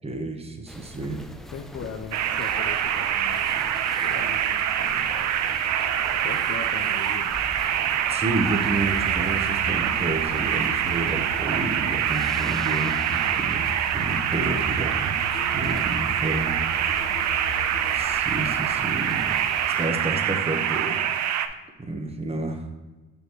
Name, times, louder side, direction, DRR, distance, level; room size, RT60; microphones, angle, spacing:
voice 1, 0.0-1.3 8.1-13.7 13.9-15.2 15.5-16.5 17.9-19.4 19.8-21.0 21.4-21.5 21.8-22.7, right 2 dB, 20° right, 4 dB, 0.9 m, -30 dB
sound 1, 0.7-19.9, equal, ahead, 0.3 m, -43 dB
voice 2, 1.5-3.7 4.0-5.2 6.1-7.4, left 5 dB, 55° left, 4 dB, 0.6 m, -39 dB
sound 2, 2.1-21.5, right 9 dB, 70° right, 0.5 m, -25 dB
Musical instrument, 8.4-18.0, equal, 85° left, 0.9 m, -37 dB
6.1 x 5.4 x 3.0 m, 1.2 s
cardioid pair, 90°, 30 cm